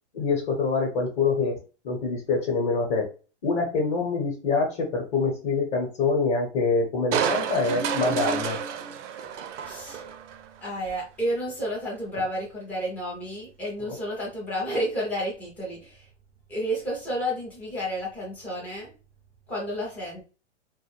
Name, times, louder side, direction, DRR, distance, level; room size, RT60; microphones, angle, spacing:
voice 1, 0.1-1.6 1.8-3.1 3.4-8.6 13.9-14.0, left 4 dB, 35° left, 0 dB, 0.9 m, -25 dB
Crushing, 7.1-10.5 10.9-11.0, right 7 dB, 85° right, 0.5 m, -30 dB
voice 2, 9.6-10.0 10.6-16.1 16.5-18.9 19.5-20.2, equal, 5° left, -4 dB, 0.3 m, -31 dB
2.5 x 2.1 x 3.1 m, 0.34 s
hypercardioid pair, 135°, 36 cm